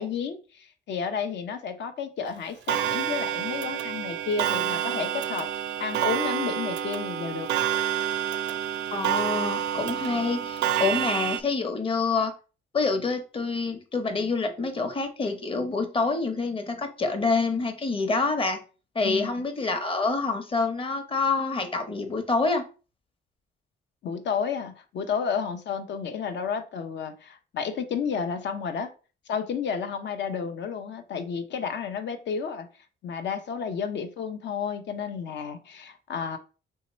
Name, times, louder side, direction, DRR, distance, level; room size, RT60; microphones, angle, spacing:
voice 1, 0.0-5.5 5.8-7.5 19.0-19.3 24.0-28.9 29.3-32.7 33.0-36.4, left 6 dB, 65° left, 8 dB, 0.7 m, -31 dB
Clock, 2.7-11.4, right 10 dB, 75° right, 0.4 m, -28 dB
voice 2, 8.9-12.3 12.7-18.6 18.9-22.6, left 3 dB, 25° left, 6 dB, 0.9 m, -27 dB
3.1 x 2.8 x 4.2 m, 0.35 s
cardioid pair, 90°, 20 cm